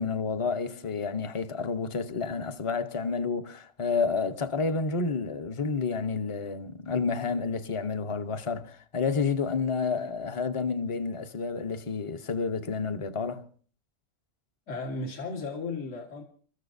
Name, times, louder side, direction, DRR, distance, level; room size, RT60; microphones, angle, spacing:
voice 1, 0.0-13.4, left 4 dB, 30° left, 0.7 m, -30 dB
voice 2, 14.7-16.2, left 3 dB, 65° left, 2.0 m, -35 dB
28.5 x 14.0 x 2.6 m
omnidirectional pair, 1.4 m